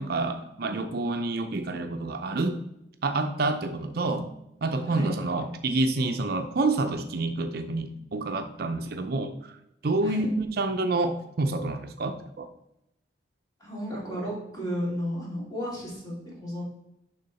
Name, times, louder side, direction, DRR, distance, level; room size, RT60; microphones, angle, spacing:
voice 1, 0.0-2.6 3.0-4.3 4.6-9.5 9.8-12.5, right 2 dB, 55° right, 7 dB, 0.5 m, -28 dB
voice 2, 4.8-5.1 10.0-10.3 13.6-16.6, equal, 20° left, -5 dB, 2.6 m, -33 dB
11.0 x 3.7 x 4.0 m, 0.83 s
head